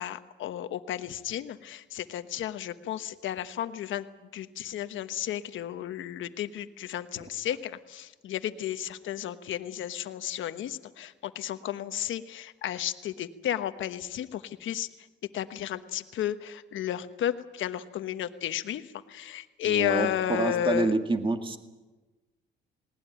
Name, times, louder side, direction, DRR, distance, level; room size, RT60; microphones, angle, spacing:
voice 1, 0.0-4.1 4.3-14.9 15.3-20.9, left 11 dB, 75° left, 10 dB, 1.2 m, -33 dB
voice 2, 19.6-21.6, right 3 dB, 25° right, 6 dB, 2.0 m, -27 dB
20.0 x 18.5 x 9.2 m, 1.2 s
cardioid pair, 90°, 20 cm